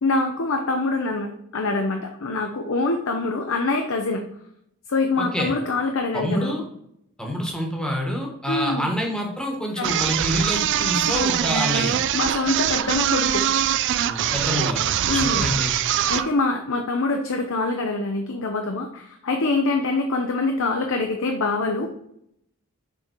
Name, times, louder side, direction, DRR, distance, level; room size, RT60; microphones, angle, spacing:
voice 1, 0.0-4.2 4.9-6.6 8.5-8.9 9.8-9.9 12.1-13.4 15.1-15.5 16.1-21.9, left 3 dB, 60° left, 4 dB, 0.7 m, -24 dB
voice 2, 5.2-5.5 6.1-6.6 7.2-12.0 14.1-15.7, equal, 5° left, 0 dB, 1.2 m, -27 dB
sound 1, 9.8-16.3, right 10 dB, 55° right, 0.3 m, -23 dB
6.8 x 3.8 x 4.4 m, 0.75 s
head